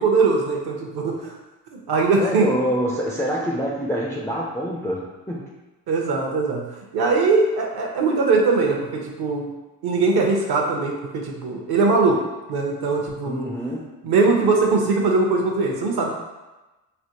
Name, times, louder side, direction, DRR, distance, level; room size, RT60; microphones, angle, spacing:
voice 1, 0.0-1.3 1.9-2.5 5.9-9.5 9.8-12.2 12.5-13.5 14.0-16.2, right 3 dB, 50° right, 1 dB, 0.8 m, -21 dB
voice 2, 2.2-5.5 13.2-13.9, equal, 5° left, -4 dB, 0.4 m, -26 dB
3.3 x 2.1 x 2.9 m, 1.1 s
hypercardioid pair, 50°, 50 cm